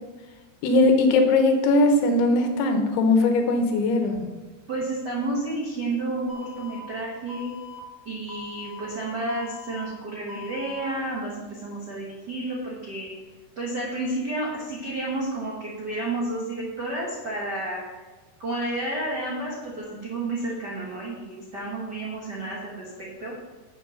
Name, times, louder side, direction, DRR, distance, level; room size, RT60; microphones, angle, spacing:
voice 1, 0.6-4.3, left 2 dB, 80° left, 5 dB, 3.0 m, -20 dB
voice 2, 4.7-7.5 8.0-13.1 13.6-18.0 18.4-23.4, right 2 dB, 80° right, -4 dB, 0.9 m, -31 dB
Alarm, 6.3-6.8 7.3-7.8 8.3-8.8 9.3-9.8 10.3-10.8, left 6 dB, 20° left, 0.5 m, -42 dB
7.4 x 6.9 x 6.5 m, 1.2 s
omnidirectional pair, 4.6 m